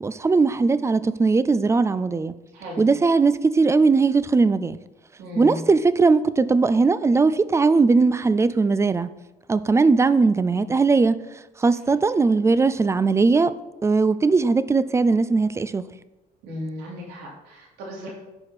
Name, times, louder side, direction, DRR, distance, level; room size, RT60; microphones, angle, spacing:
voice 1, 0.0-2.3 2.8-4.8 5.4-9.1 9.5-11.2 11.6-13.5 13.8-15.8, right 4 dB, 15° right, 0.3 m, -19 dB
voice 2, 2.5-2.9 5.2-5.6 16.4-18.1, left 1 dB, 90° right, 2.9 m, -35 dB
10.5 x 4.9 x 4.2 m
cardioid pair, 110°, 17 cm